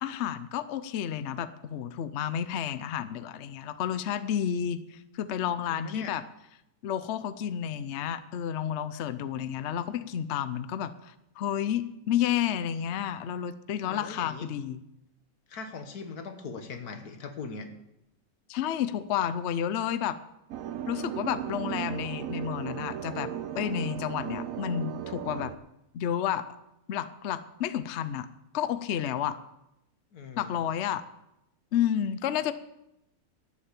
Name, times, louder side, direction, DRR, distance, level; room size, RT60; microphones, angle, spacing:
voice 1, 0.0-6.2 6.8-14.8 18.5-20.2 20.9-23.3 23.5-25.5 25.9-26.5 26.9-28.3 28.5-29.4 30.4-31.0 31.7-32.5, left 9 dB, 60° left, 13 dB, 0.8 m, -31 dB
voice 2, 5.7-6.1 13.9-14.5 15.5-17.7 30.1-30.5, left 4 dB, 90° left, 7 dB, 1.8 m, -40 dB
sound 1, 20.5-25.6, right 10 dB, 70° right, 1.1 m, -36 dB
12.5 x 7.3 x 8.4 m, 0.87 s
omnidirectional pair, 1.6 m